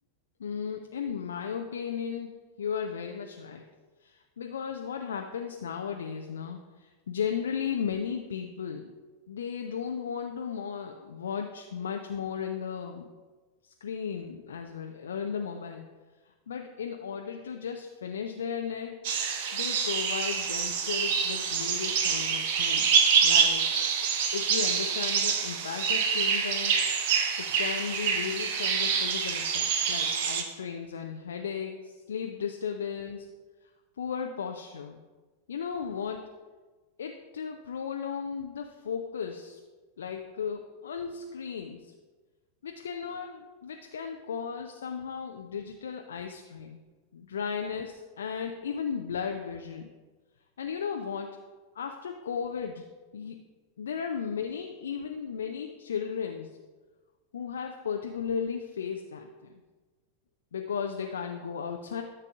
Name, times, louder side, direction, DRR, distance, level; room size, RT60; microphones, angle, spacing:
voice 1, 0.4-3.6 4.0-8.9 9.3-13.1 13.6-15.9 16.2-19.0 19.5-23.7 24.3-26.7 27.4-33.3 34.0-35.0 35.5-36.3 37.0-39.6 40.0-41.9 42.6-46.8 47.1-49.9 50.6-51.4 51.7-52.9 53.1-53.4 53.8-56.6 57.3-59.3 60.5-62.0, left 7 dB, 65° left, 3 dB, 0.5 m, -35 dB
sound 1, 19.0-30.4, right 6 dB, 50° right, 0.9 m, -26 dB
13.0 x 6.7 x 2.4 m, 1.3 s
figure-of-eight pair, 90°, 0 cm